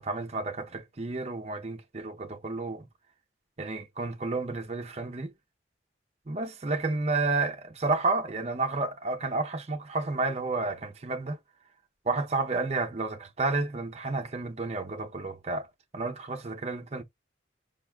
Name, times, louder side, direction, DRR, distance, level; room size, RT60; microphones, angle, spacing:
voice 1, 0.0-2.9 3.6-5.3 6.3-11.4 12.1-15.7 15.9-17.0, right 3 dB, 35° right, 0.6 m, -31 dB
5.6 x 2.5 x 2.2 m
head